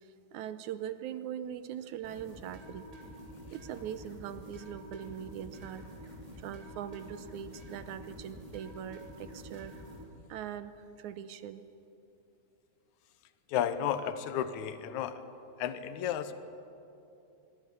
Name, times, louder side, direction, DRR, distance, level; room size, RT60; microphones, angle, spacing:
voice 1, 0.3-2.9 3.5-5.9 6.4-9.8 10.3-10.7 11.0-11.7, right 9 dB, 75° right, 12 dB, 2.0 m, -41 dB
sound 1, 2.0-10.0, equal, 10° right, 3.1 m, -48 dB
voice 2, 13.5-15.2 15.6-16.3, left 9 dB, 70° left, 11 dB, 2.3 m, -32 dB
24.5 x 22.0 x 7.0 m, 2.8 s
omnidirectional pair, 3.8 m